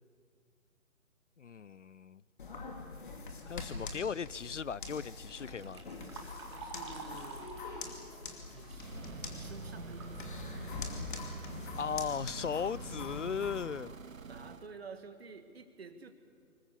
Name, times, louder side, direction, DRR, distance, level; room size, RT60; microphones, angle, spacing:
voice 1, 1.4-2.2 3.5-5.8 11.8-13.9, left 6 dB, 60° left, 0.5 m, -37 dB
sound 1, 2.4-13.6, left 3 dB, 35° left, 2.7 m, -44 dB
Liquid, 5.1-10.2 10.6-10.7 11.6-11.7 12.1-12.4 13.0-13.1 13.6-13.7 14.2-14.4, right 3 dB, 20° right, 1.6 m, -50 dB
voice 2, 6.5-7.6 8.5-10.3 14.3-16.1, right 4 dB, 45° right, 2.0 m, -50 dB
sound 2, 8.6-14.7, right 5 dB, 65° right, 1.1 m, -47 dB
25.0 x 21.0 x 8.4 m
figure-of-eight pair, 155°, 43 cm